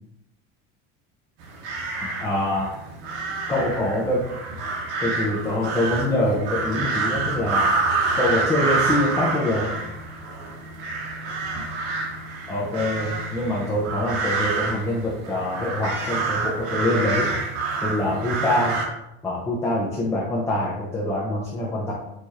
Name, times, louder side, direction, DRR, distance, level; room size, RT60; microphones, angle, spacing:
sound 1, 1.4-18.9, right 3 dB, 70° right, 1.0 m, -27 dB
voice 1, 2.2-2.7 3.5-4.2 5.0-7.7 8.1-9.7 12.5-17.3 17.8-18.8 19.2-21.9, left 1 dB, 10° left, -5 dB, 0.4 m, -24 dB
4.7 x 2.4 x 4.1 m, 0.89 s
cardioid pair, 180°, 29 cm